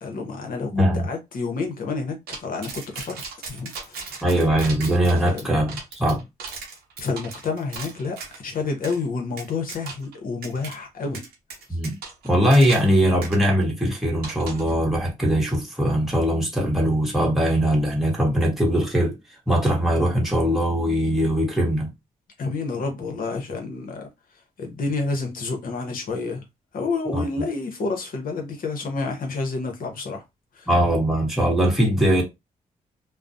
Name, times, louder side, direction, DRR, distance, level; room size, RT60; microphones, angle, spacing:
voice 1, 0.0-3.2 3.5-4.1 5.1-5.6 7.0-8.2 8.4-11.2 22.4-24.1 24.6-26.4 26.7-30.2 30.6-30.7, left 4 dB, 65° left, 0.8 m, -29 dB
voice 2, 0.7-1.1 4.2-6.2 11.7-12.0 12.2-19.2 19.5-21.9 27.1-27.2 30.7-32.2, equal, ahead, 1.0 m, -21 dB
sound 1, 2.3-8.4 8.8-9.0 9.4-10.1 10.4-10.7 11.1-12.9 13.2-13.4 14.2-14.7, right 4 dB, 90° right, 0.7 m, -37 dB
2.3 x 2.0 x 2.6 m
cardioid pair, 60°, 16 cm